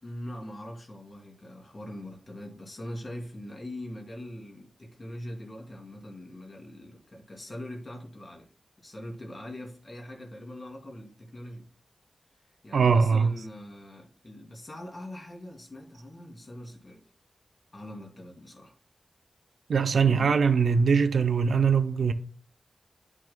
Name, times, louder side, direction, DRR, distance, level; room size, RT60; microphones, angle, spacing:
voice 1, 0.0-8.5 8.8-11.7 12.6-17.0 17.7-18.7 20.0-20.4, left 1 dB, 45° left, 2.9 m, -42 dB
voice 2, 12.7-13.3 19.7-22.1, right 5 dB, 90° right, 0.6 m, -22 dB
10.5 x 6.0 x 2.2 m
cardioid pair, 50°, 0 cm